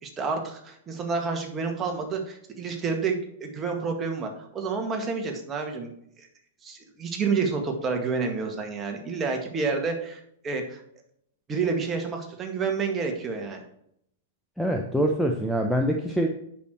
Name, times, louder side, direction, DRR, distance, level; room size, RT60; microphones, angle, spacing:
voice 1, 0.0-5.9 6.2-6.3 6.6-10.8 11.5-13.6, right 4 dB, 20° right, 3 dB, 1.9 m, -29 dB
voice 2, 14.6-16.3, equal, ahead, 2 dB, 0.8 m, -24 dB
8.4 x 6.3 x 4.4 m, 0.72 s
figure-of-eight pair, 100°, 0 cm